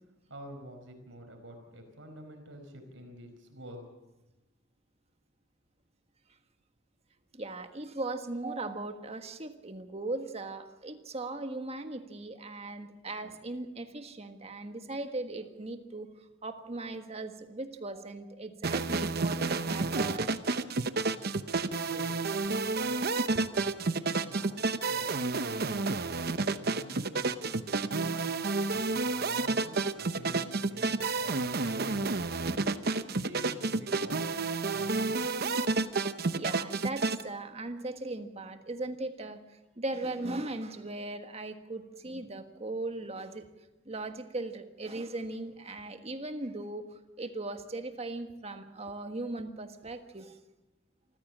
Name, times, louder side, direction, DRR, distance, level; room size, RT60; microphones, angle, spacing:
voice 1, 0.3-3.8 21.8-23.3 23.6-27.3 27.7-35.2, equal, 70° right, 5 dB, 5.1 m, -48 dB
voice 2, 7.3-16.1 16.4-20.4 36.3-39.4 39.8-43.4 43.8-46.9 47.2-50.4, right 2 dB, 30° right, 7 dB, 1.6 m, -38 dB
sound 1, 18.6-37.2, right 3 dB, 55° right, 0.9 m, -30 dB
26.0 x 15.0 x 7.5 m, 1.0 s
head